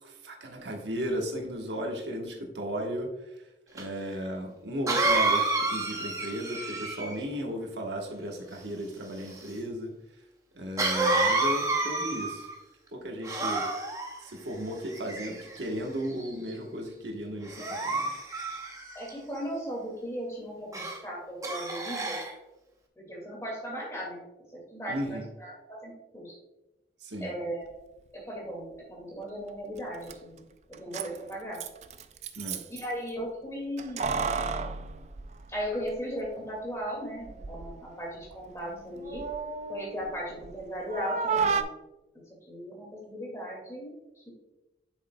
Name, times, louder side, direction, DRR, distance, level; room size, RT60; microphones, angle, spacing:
voice 1, 0.0-3.1 3.7-9.9 10.5-12.5 12.9-13.6 14.2-18.1 24.9-25.2 27.0-27.3 32.4-32.6, equal, 90° right, 1 dB, 1.2 m, -35 dB
Cough, 3.8-3.9 4.9-7.2 10.8-12.5 13.2-14.1 14.9-15.6 16.2-16.5 17.5-19.1 20.7-21.0 21.4-22.3, right 2 dB, 20° right, 0.8 m, -29 dB
voice 2, 18.9-22.2 23.0-24.2 24.5-26.3 27.2-27.7 28.1-30.4 30.8-31.6 32.7-34.3 35.5-39.2 39.7-41.7 42.5-43.9, equal, 15° left, -2 dB, 2.1 m, -37 dB
Keys jangling, 29.8-29.9 30.1-30.2 30.7-32.9 33.8-35.9 36.2-36.3 37.2-37.8 38.1-40.6 40.9-41.6, right 5 dB, 40° right, 0.3 m, -32 dB
7.8 x 6.4 x 2.2 m, 1.0 s
head